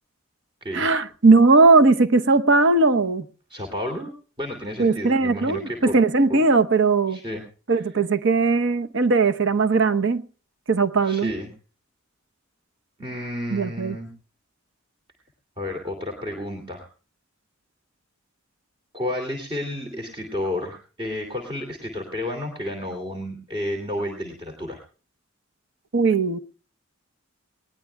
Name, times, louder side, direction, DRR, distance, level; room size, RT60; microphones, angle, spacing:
voice 1, 0.7-3.2 4.8-7.2 7.7-10.2 10.7-11.3 13.5-14.0 25.9-26.4, right 3 dB, 65° right, 0.9 m, -18 dB
voice 2, 3.5-6.0 6.3-6.4 7.1-7.4 7.7-7.9 11.0-11.5 13.0-14.1 15.6-16.9 18.9-24.8, left 1 dB, 25° right, 2.7 m, -31 dB
20.5 x 18.5 x 2.3 m
head